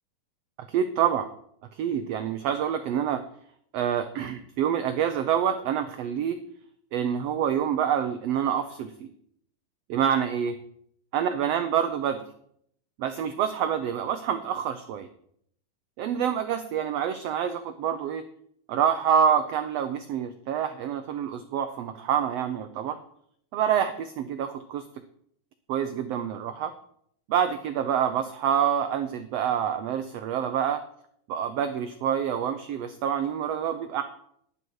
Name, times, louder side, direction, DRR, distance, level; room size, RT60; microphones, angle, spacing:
voice 1, 0.7-1.3 1.7-3.2 3.7-6.4 6.9-9.1 9.9-10.5 11.1-12.2 13.0-15.1 16.0-18.2 18.7-23.0 23.5-24.9 25.7-26.7 27.3-30.8 31.3-34.0, right 8 dB, 80° right, 8 dB, 1.4 m, -27 dB
11.0 x 11.0 x 4.7 m, 0.67 s
omnidirectional pair, 3.7 m